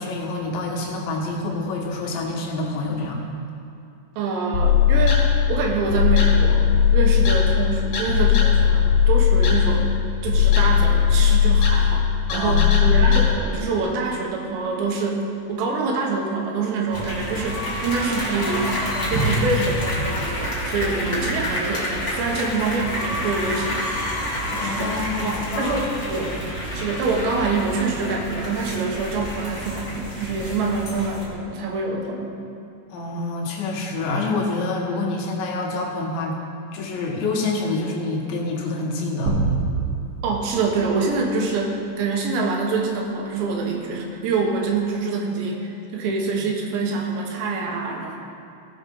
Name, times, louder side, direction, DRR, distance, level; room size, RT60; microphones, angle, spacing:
voice 1, 0.0-3.2 12.3-13.1 24.6-25.8 26.1-26.4 32.9-36.4 36.7-39.4 46.0-46.5, left 3 dB, 90° left, -1 dB, 3.8 m, -27 dB
voice 2, 4.2-9.9 10.2-15.2 15.5-18.7 19.1-23.9 24.4-24.9 25.2-26.4 26.7-32.4 40.2-48.2, right 4 dB, 80° right, 1 dB, 3.5 m, -25 dB
sound 1, 4.5-13.3, left 7 dB, 70° left, 3.6 m, -18 dB
sound 2, 16.9-31.2, equal, 30° left, 1.4 m, -28 dB
sound 3, 39.3-41.8, right 3 dB, 45° right, 2.4 m, -27 dB
17.5 x 6.2 x 5.4 m, 2.7 s
omnidirectional pair, 5.0 m